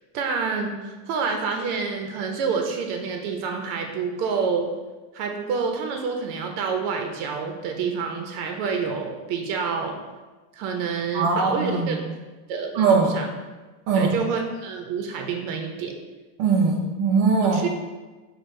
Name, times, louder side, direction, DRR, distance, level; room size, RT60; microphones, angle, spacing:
voice 1, 0.1-4.7 5.1-9.9 10.5-12.0 12.5-13.3 13.9-16.0 17.4-17.7, right 5 dB, 80° right, 3 dB, 0.7 m, -28 dB
voice 2, 11.1-12.0 12.7-13.3 13.9-14.2 16.4-17.6, right 4 dB, 45° right, -2 dB, 0.5 m, -21 dB
6.2 x 2.3 x 3.2 m, 1.2 s
cardioid pair, 160°, 46 cm